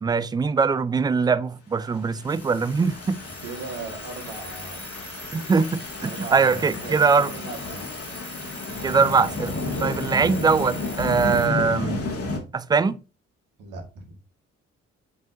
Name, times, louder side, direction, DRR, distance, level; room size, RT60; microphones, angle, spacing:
voice 1, 0.0-3.2 5.3-7.3 8.8-9.5 9.8-12.0 12.5-13.0, right 5 dB, 10° right, 0.4 m, -22 dB
sound 1, 2.0-12.4, left 2 dB, 40° left, 1.9 m, -32 dB
Alarm, 2.3-11.5, left 1 dB, 5° left, 1.3 m, -42 dB
voice 2, 3.4-4.8 6.0-7.9 13.6-14.2, right 4 dB, 55° right, 1.7 m, -38 dB
7.3 x 5.5 x 2.6 m
figure-of-eight pair, 45°, 38 cm